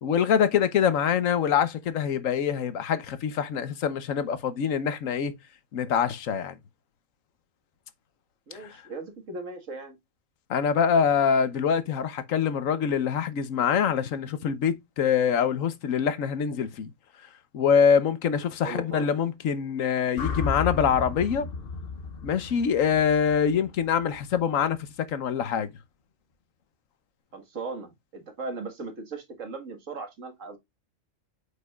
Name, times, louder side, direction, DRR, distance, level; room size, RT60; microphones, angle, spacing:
voice 1, 0.0-5.3 5.7-6.6 8.6-8.7 10.5-16.9 17.5-21.5 22.2-25.7, left 7 dB, 80° left, 1.3 m, -24 dB
voice 2, 8.5-10.0 18.6-19.1 27.3-30.6, right 3 dB, 70° right, 2.0 m, -38 dB
sound 1, 20.2-24.4, left 5 dB, 50° left, 1.0 m, -34 dB
8.2 x 5.3 x 2.3 m
omnidirectional pair, 1.4 m